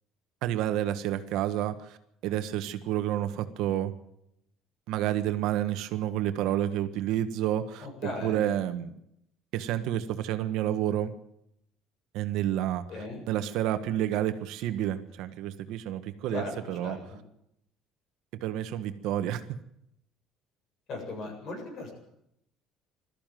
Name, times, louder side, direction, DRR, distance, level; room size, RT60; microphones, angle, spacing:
voice 1, 0.4-2.0 2.2-3.9 4.9-7.9 8.2-9.0 9.5-11.1 12.1-17.0 18.4-19.4, right 12 dB, 70° right, 9 dB, 1.5 m, -29 dB
voice 2, 7.8-8.4 12.9-13.2 16.3-16.5 16.8-17.2 20.9-21.9, left 2 dB, 45° left, 3 dB, 7.7 m, -37 dB
20.5 x 14.0 x 9.3 m, 0.78 s
cardioid pair, 165°, 0 cm